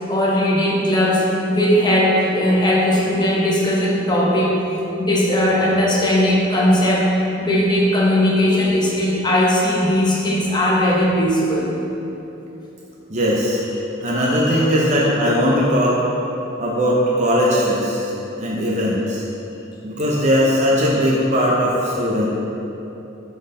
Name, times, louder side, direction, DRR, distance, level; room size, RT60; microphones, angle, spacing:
voice 1, 0.1-4.6 5.0-11.7 14.2-14.7, left 1 dB, 25° left, -4 dB, 1.0 m, -18 dB
voice 2, 13.1-13.6 14.0-16.0 16.6-18.1 18.4-19.2 19.8-22.3, equal, 40° right, -4 dB, 0.7 m, -19 dB
5.6 x 4.1 x 5.3 m, 3.0 s
head